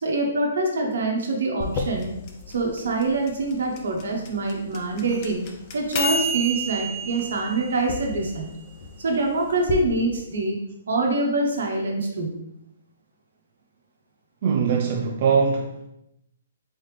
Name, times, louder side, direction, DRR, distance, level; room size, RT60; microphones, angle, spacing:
voice 1, 0.0-2.1 2.5-5.5 5.7-8.5 9.0-10.6 10.9-12.4, right 2 dB, 75° right, 1 dB, 1.0 m, -25 dB
sound 1, 1.6-9.8, equal, 35° left, 0.6 m, -31 dB
voice 2, 14.4-15.9, right 6 dB, 45° right, 2 dB, 0.4 m, -22 dB
3.9 x 3.3 x 3.3 m, 0.81 s
hypercardioid pair, 150°, 0 cm